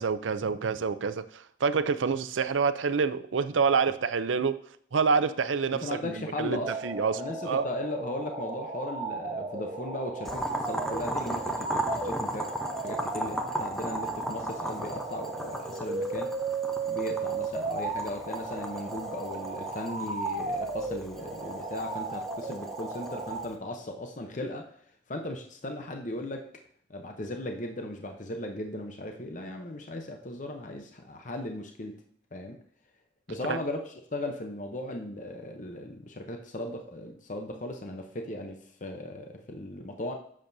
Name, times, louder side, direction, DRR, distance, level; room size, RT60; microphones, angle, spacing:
voice 1, 0.0-4.5 4.9-7.2 7.5-7.7 33.5-33.6, right 5 dB, 90° right, 12 dB, 0.5 m, -27 dB
voice 2, 5.7-6.8 7.2-16.3 16.9-26.5 26.9-32.0 32.3-32.6 33.3-40.1, left 1 dB, 40° left, 4 dB, 0.8 m, -37 dB
sound 1, 6.6-23.5, right 3 dB, 25° right, 1.2 m, -35 dB
Boiling, 10.2-23.5, right 1 dB, ahead, 0.7 m, -37 dB
9.9 x 7.5 x 2.7 m, 0.63 s
head